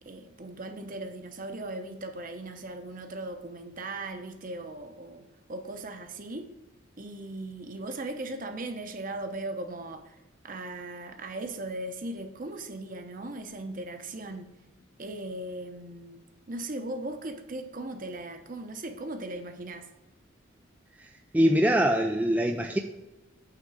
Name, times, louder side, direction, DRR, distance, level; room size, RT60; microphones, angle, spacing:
voice 1, 0.0-5.2 5.5-6.5 7.0-10.2 10.4-14.5 15.0-19.9, right 2 dB, 40° right, 0.8 m, -38 dB
voice 2, 21.3-22.8, equal, 10° right, 0.3 m, -23 dB
8.9 x 3.8 x 6.1 m
head